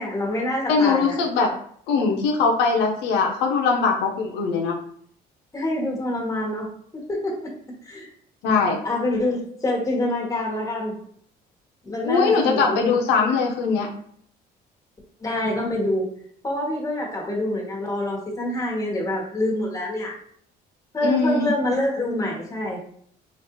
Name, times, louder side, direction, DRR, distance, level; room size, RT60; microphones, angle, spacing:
voice 1, 0.0-1.1 5.5-7.5 7.8-8.1 8.8-11.0 11.8-13.0 15.2-16.1 16.4-20.1 20.9-22.8, left 1 dB, 20° left, -2 dB, 1.4 m, -26 dB
voice 2, 0.7-1.5 1.9-4.7 8.4-8.8 12.0-13.9 21.0-21.5, left 4 dB, 90° left, 1 dB, 0.7 m, -21 dB
5.0 x 2.5 x 3.0 m, 0.62 s
cardioid pair, 110°, 17 cm